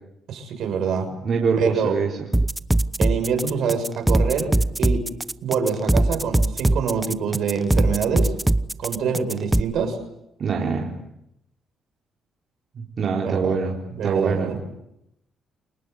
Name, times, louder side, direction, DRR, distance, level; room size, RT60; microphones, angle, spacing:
voice 1, 0.3-1.1 1.6-2.0 3.0-4.5 4.8-5.0 5.4-8.3 8.8-10.0 13.2-13.6 14.0-14.6, right 6 dB, 75° right, 6 dB, 6.7 m, -25 dB
voice 2, 1.2-2.1 10.4-10.9 12.7-13.8 14.0-14.5, right 5 dB, 55° right, -1 dB, 4.2 m, -24 dB
sound 1, 2.3-9.6, right 1 dB, 10° right, 0.9 m, -20 dB
29.5 x 19.0 x 8.1 m, 0.84 s
cardioid pair, 90°, 0 cm